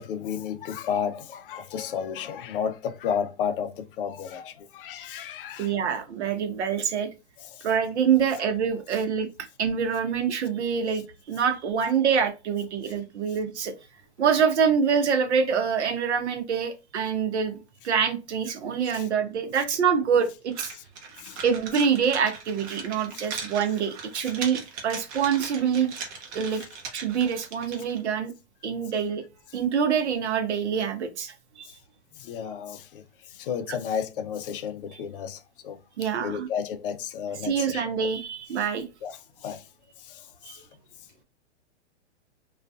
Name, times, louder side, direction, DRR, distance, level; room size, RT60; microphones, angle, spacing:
voice 1, 0.0-5.7 7.4-7.7 8.4-8.5 10.6-10.7 12.9-13.0 18.9-19.1 20.7-20.8 21.2-21.4 23.1-23.2 24.2-24.3 26.5-26.7 31.6-31.7 32.1-35.8 36.2-37.8 39.0-39.7 40.0-40.7, left 7 dB, 50° left, 0.4 m, -33 dB
voice 2, 5.6-7.1 7.6-9.3 9.6-13.7 14.2-17.6 17.8-20.7 21.4-25.9 26.3-26.6 26.9-28.3 28.6-29.2 29.5-31.7 34.9-35.0 36.0-36.5 37.4-38.8 40.5-40.6, right 7 dB, 75° right, 0.8 m, -25 dB
sound 1, 20.5-28.0, right 5 dB, 30° right, 0.7 m, -39 dB
2.5 x 2.3 x 2.2 m
hypercardioid pair, 125°, 34 cm